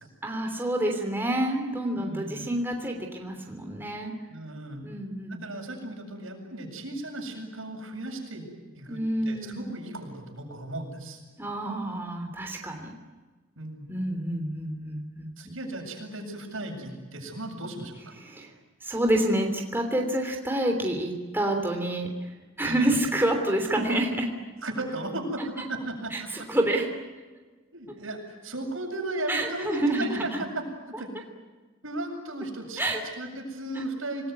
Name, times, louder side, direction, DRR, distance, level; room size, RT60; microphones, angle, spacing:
voice 1, 0.2-4.1 4.8-5.4 8.9-9.7 11.4-12.9 13.9-15.3 18.2-18.5 18.8-22.3 22.6-24.3 26.1-26.9 29.3-30.2 32.8-33.0 33.7-33.8, right 1 dB, 10° right, 2 dB, 3.1 m, -28 dB
voice 2, 1.9-2.5 4.3-4.9 5.3-8.5 8.7-9.0 9.3-11.2 13.6-13.9 15.4-18.1 22.6-22.9 24.6-26.3 27.7-30.6 31.0-31.1 31.8-32.8 33.2-34.3, right 1 dB, 75° right, 1 dB, 7.9 m, -35 dB
27.0 x 20.5 x 9.6 m, 1.3 s
head